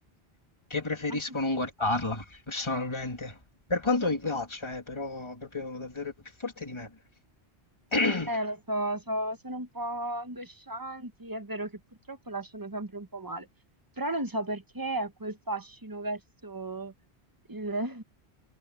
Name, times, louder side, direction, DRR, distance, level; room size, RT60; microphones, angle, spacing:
voice 1, 0.7-3.4 3.7-7.0 7.9-8.3, left 2 dB, 25° left, 2.6 m, -30 dB
voice 2, 8.3-11.8 12.1-13.5 14.0-16.9 17.5-18.0, right 1 dB, 20° right, 1.0 m, -34 dB
omnidirectional pair, 1.1 m